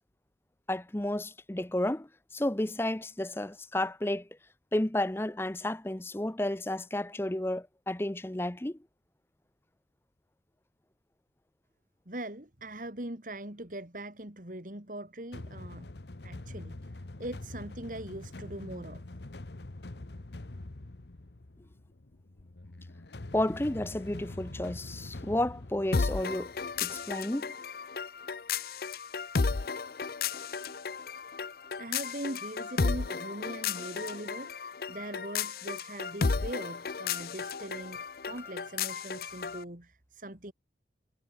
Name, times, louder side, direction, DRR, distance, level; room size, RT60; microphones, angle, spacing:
voice 1, 0.7-4.3 4.7-8.8 23.3-26.5 26.8-27.5, left 1 dB, 15° left, 0.7 m, -32 dB
voice 2, 12.1-15.9 16.2-19.0 31.8-40.5, right 1 dB, 50° right, 3.0 m, -41 dB
sound 1, 15.3-27.2, left 2 dB, 75° left, 1.1 m, -45 dB
sound 2, 25.9-39.6, left 5 dB, 55° left, 0.6 m, -34 dB
head